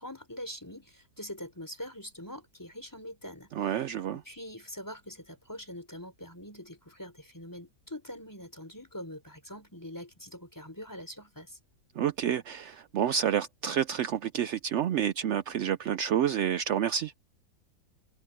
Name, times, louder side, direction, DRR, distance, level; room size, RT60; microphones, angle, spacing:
voice 1, 0.0-3.7 4.1-11.6, left 1 dB, 10° left, 4.0 m, -44 dB
voice 2, 3.5-4.2 12.0-17.1, right 9 dB, 75° right, 0.6 m, -29 dB
omnidirectional pair, 1.8 m